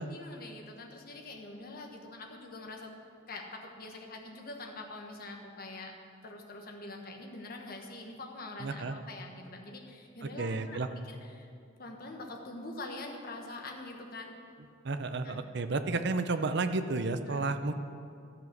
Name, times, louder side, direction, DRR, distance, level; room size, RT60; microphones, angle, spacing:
voice 1, 0.0-2.9 3.3-5.9 6.2-11.5 11.8-14.4 15.2-15.4 17.3-17.4, left 2 dB, 50° left, 2 dB, 1.3 m, -44 dB
voice 2, 8.6-9.0 10.2-10.9 14.8-17.7, right 3 dB, 60° right, 9 dB, 0.6 m, -32 dB
13.5 x 7.2 x 6.1 m, 2.4 s
head